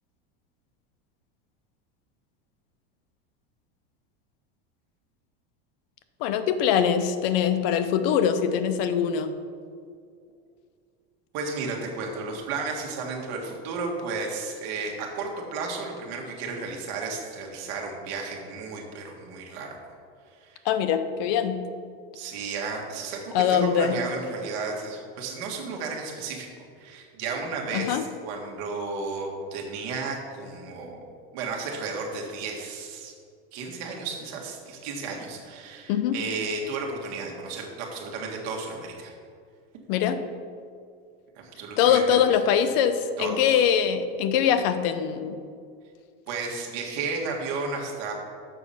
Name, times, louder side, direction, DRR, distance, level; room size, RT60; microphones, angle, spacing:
voice 1, 6.2-9.3 20.6-21.6 23.3-24.0 27.7-28.0 35.9-36.2 39.9-40.2 41.8-45.4, left 8 dB, 60° left, 9 dB, 0.7 m, -23 dB
voice 2, 11.3-19.9 20.4-20.6 22.1-26.5 26.8-31.0 31.3-33.1 33.5-39.1 41.6-42.2 43.2-43.7 46.3-48.1, right 4 dB, 55° right, 0 dB, 1.8 m, -33 dB
6.9 x 6.0 x 5.7 m, 2.2 s
supercardioid pair, 150°, 32 cm